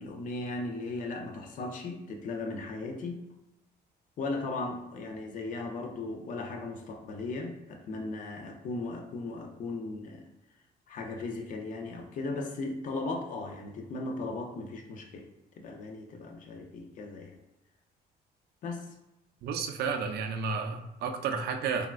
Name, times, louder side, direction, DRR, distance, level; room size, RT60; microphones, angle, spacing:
voice 1, 0.0-3.2 4.2-10.3 10.9-15.3 15.6-17.4 18.6-18.9, left 3 dB, 50° left, 2 dB, 0.5 m, -37 dB
voice 2, 19.4-21.9, right 5 dB, 70° right, 5 dB, 0.4 m, -32 dB
3.4 x 2.2 x 2.4 m, 0.92 s
cardioid pair, 155°, 17 cm